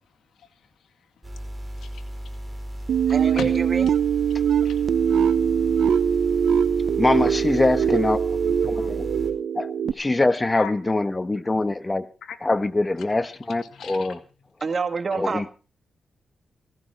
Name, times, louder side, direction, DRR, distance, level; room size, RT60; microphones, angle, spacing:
voice 1, 0.0-1.5 1.7-2.4 3.4-3.5 4.3-4.4 4.6-4.8 8.7-8.9 10.5-10.7 12.2-12.5 13.0-14.2 15.1-15.2, left 6 dB, 85° left, 2.2 m, -40 dB
sound 1, 1.2-9.3, equal, 15° right, 4.9 m, -35 dB
sound 2, 2.9-9.9, right 8 dB, 75° right, 0.7 m, -22 dB
voice 2, 3.1-3.9 14.6-15.5, right 4 dB, 45° right, 2.0 m, -27 dB
voice 3, 7.0-9.1 9.6-9.7 10.0-12.1 12.4-14.2 15.2-15.5, left 2 dB, 20° left, 1.3 m, -23 dB
17.0 x 16.0 x 4.6 m
cardioid pair, 85°, 0 cm